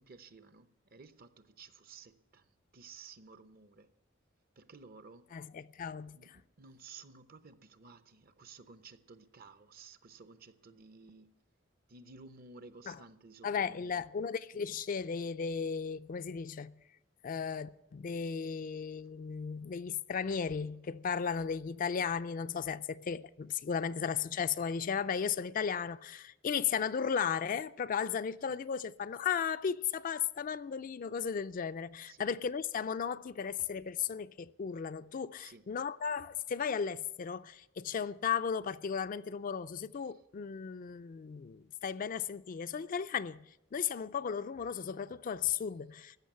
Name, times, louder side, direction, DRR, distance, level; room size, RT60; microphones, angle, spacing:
voice 1, 0.0-3.9 4.6-5.3 6.2-11.3 11.9-14.0 28.5-28.6 32.0-32.3 35.4-35.7 40.0-40.1, right 4 dB, 50° right, 0.8 m, -55 dB
voice 2, 5.3-6.4 12.9-13.0 13.4-16.7 17.2-43.4 43.7-46.2, left 7 dB, 45° left, 0.4 m, -35 dB
15.0 x 6.2 x 9.2 m
head